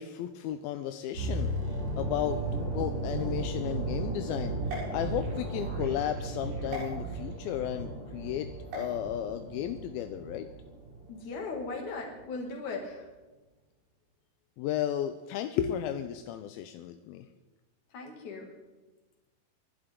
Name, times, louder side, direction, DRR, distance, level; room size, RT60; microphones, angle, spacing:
voice 1, 0.0-2.4 2.7-4.6 4.9-8.5 8.7-10.5 14.6-17.3, left 11 dB, 80° left, 7 dB, 2.3 m, -34 dB
sound 1, 1.2-11.1 11.4-11.6, right 2 dB, 55° right, 4.0 m, -35 dB
sound 2, 4.6-5.7 6.7-6.9 8.6-8.9, right 1 dB, 90° right, 9.7 m, -40 dB
voice 2, 11.1-13.1 17.9-18.5, left 3 dB, 50° left, 0 dB, 3.6 m, -38 dB
29.5 x 11.5 x 3.8 m, 1.2 s
omnidirectional pair, 4.8 m